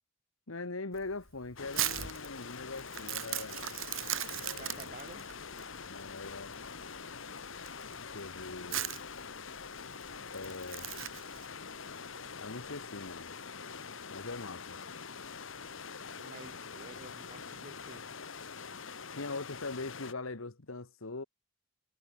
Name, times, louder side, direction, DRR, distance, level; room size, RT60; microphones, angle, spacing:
voice 1, 0.5-3.7 4.3-4.9 5.8-6.9 8.1-9.0 10.3-10.9 12.4-13.3 14.1-14.8 19.1-21.2, left 3 dB, 90° left, 1.6 m, -42 dB
Crumpling crinkling, 0.9-11.5, right 12 dB, 80° right, 4.6 m, -39 dB
sound 1, 1.6-20.1, left 5 dB, 70° left, 1.5 m, -45 dB
voice 2, 4.5-5.3 16.2-18.1, right 2 dB, 40° right, 6.5 m, -51 dB
head